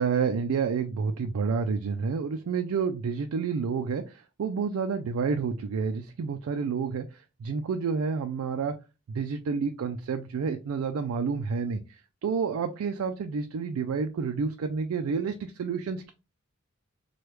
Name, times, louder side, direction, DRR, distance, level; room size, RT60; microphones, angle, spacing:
voice 1, 0.0-8.7 9.1-11.8 12.2-16.1, right 5 dB, 80° right, 7 dB, 0.3 m, -29 dB
3.2 x 2.3 x 2.9 m, 0.28 s
head